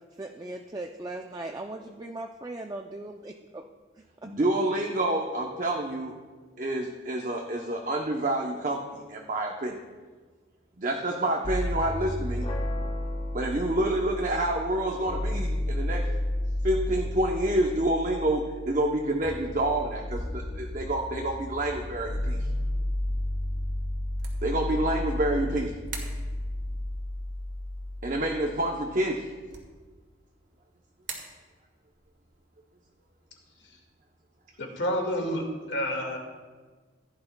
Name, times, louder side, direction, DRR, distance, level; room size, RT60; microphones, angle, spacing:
voice 1, 0.1-3.6 4.0-4.3, right 2 dB, 20° right, 3 dB, 0.4 m, -39 dB
voice 2, 4.2-6.1 6.6-9.8 10.8-12.5 13.3-16.1 16.6-22.5 24.4-25.8 28.0-29.3, right 1 dB, 40° right, 1 dB, 0.7 m, -28 dB
sound 1, 11.4-29.4, left 1 dB, 20° left, 0.6 m, -32 dB
sound 2, 12.4-18.4, left 1 dB, 35° left, 1.3 m, -46 dB
sound 3, 21.5-35.7, right 5 dB, 65° right, 1.8 m, -50 dB
voice 3, 34.6-36.2, equal, 70° left, 2 dB, 1.8 m, -29 dB
15.5 x 10.5 x 2.2 m, 1.4 s
head